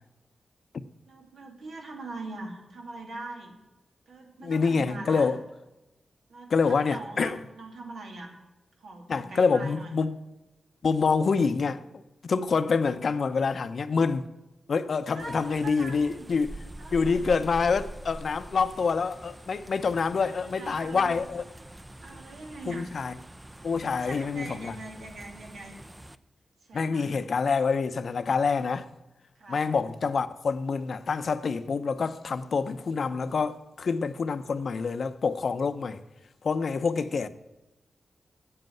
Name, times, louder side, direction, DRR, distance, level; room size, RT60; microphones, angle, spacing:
voice 1, 1.1-3.6 4.1-5.3 6.3-8.3 8.7-9.9 15.1-16.3 16.8-17.2 20.2-21.2 22.0-22.9 23.9-25.7 26.6-27.2 29.3-29.6, right 2 dB, 85° right, 2.6 m, -42 dB
voice 2, 4.4-5.4 6.5-7.4 9.1-10.2 10.8-11.8 12.2-14.3 14.7-16.6 16.9-21.4 22.7-23.1 23.6-24.7 26.7-28.9 29.5-36.0 36.4-37.3, left 5 dB, 60° left, 0.7 m, -26 dB
sound 1, 15.2-26.2, right 1 dB, 15° right, 0.5 m, -45 dB
8.7 x 7.8 x 9.1 m
wide cardioid pair, 115°, 0 cm